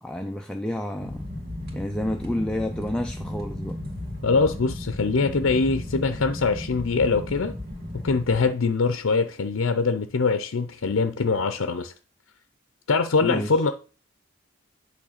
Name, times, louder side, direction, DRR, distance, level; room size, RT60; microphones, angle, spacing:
voice 1, 0.0-1.3 1.7-3.8 13.2-13.6, left 1 dB, 5° left, 0.5 m, -29 dB
sound 1, 1.0-8.5, left 1 dB, 55° right, 2.1 m, -35 dB
voice 2, 4.2-7.6 7.9-11.9 12.9-13.7, left 4 dB, 90° left, 0.6 m, -23 dB
8.7 x 3.3 x 6.5 m
head